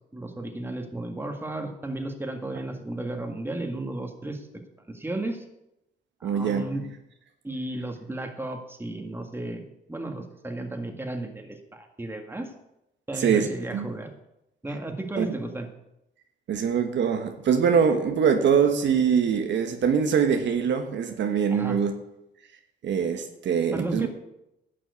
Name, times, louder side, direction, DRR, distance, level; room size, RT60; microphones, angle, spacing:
voice 1, 0.1-4.5 4.9-5.4 6.2-6.8 7.4-12.5 13.1-14.1 14.6-15.7 21.5-21.8 23.7-24.1, right 2 dB, 10° right, 1.8 m, -34 dB
voice 2, 6.2-6.7 13.2-13.9 15.2-15.3 16.5-21.9 22.8-24.1, right 7 dB, 65° right, 1.3 m, -23 dB
11.0 x 6.1 x 8.2 m
cardioid pair, 90°, 20 cm